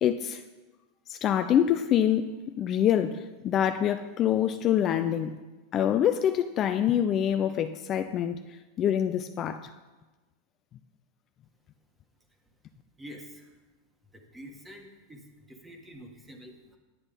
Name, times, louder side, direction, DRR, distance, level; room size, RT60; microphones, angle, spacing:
voice 1, 0.0-0.4 1.1-2.3 2.6-5.3 5.7-8.4 8.8-9.7, left 10 dB, 35° left, 9 dB, 0.4 m, -25 dB
voice 2, 13.0-13.6 14.1-16.8, equal, 10° right, 3 dB, 1.5 m, -47 dB
10.0 x 7.9 x 5.2 m, 1.2 s
supercardioid pair, 125°, 0 cm